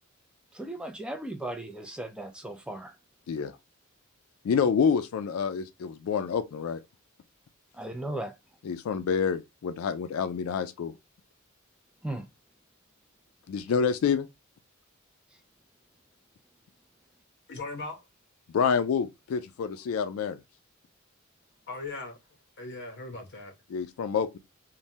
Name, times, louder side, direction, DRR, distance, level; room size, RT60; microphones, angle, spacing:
voice 1, 0.5-2.9 7.7-8.3 12.0-12.3, right 1 dB, 5° right, 0.3 m, -36 dB
voice 2, 4.4-6.8 8.6-10.9 13.5-14.3 18.5-20.4 23.7-24.4, left 6 dB, 80° left, 0.3 m, -27 dB
voice 3, 17.5-18.0 21.7-22.2 22.6-23.5, left 3 dB, 55° left, 0.8 m, -38 dB
3.2 x 2.1 x 2.7 m
head